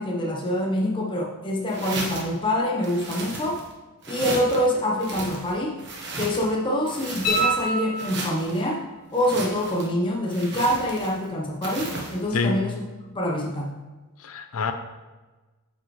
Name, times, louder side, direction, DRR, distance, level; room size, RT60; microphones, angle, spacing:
voice 1, 0.0-3.6 4.1-5.8 6.2-8.8 9.1-12.8 13.1-13.7, equal, 20° left, -2 dB, 0.7 m, -25 dB
sound 1, 1.7-2.4 2.8-3.7 4.0-4.6 5.0-6.6 6.9-7.7 8.0-8.6 9.1-9.9 10.3-11.2 11.6-12.2, right 2 dB, 50° right, 1.2 m, -35 dB
sound 2, 7.2-8.6 11.4-11.5, right 1 dB, 40° left, 2.2 m, -26 dB
voice 2, 12.3-12.6 14.2-14.7, left 4 dB, 70° left, 8 dB, 0.6 m, -26 dB
8.6 x 5.1 x 3.2 m, 1.2 s
head